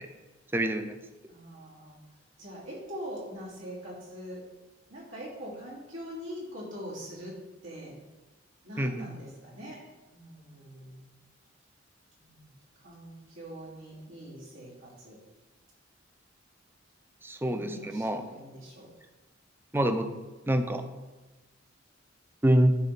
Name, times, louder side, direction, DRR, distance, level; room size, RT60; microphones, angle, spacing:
voice 1, 0.5-1.0 8.8-9.1 17.2-18.2 19.7-20.1 20.5-20.8 22.4-22.8, right 1 dB, 10° right, 8 dB, 0.5 m, -26 dB
voice 2, 1.3-2.0 2.4-4.4 4.9-7.3 7.6-7.9 8.6-9.8 10.1-11.1 12.2-12.5 12.8-15.2 17.4-18.9, equal, 85° right, -5 dB, 2.8 m, -43 dB
9.7 x 3.8 x 5.8 m, 1.2 s
head